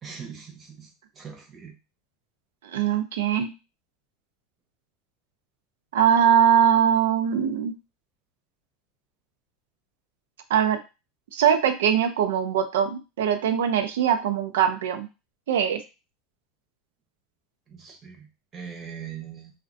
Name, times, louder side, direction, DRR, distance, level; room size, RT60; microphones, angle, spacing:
voice 1, 0.0-1.8 17.7-19.5, right 7 dB, 35° right, 3 dB, 0.8 m, -41 dB
voice 2, 2.6-3.5 5.9-7.7 10.5-10.8 11.3-15.1 15.5-15.8, right 9 dB, 85° right, 7 dB, 0.4 m, -21 dB
2.4 x 2.1 x 2.5 m, 0.28 s
supercardioid pair, 105°, 0 cm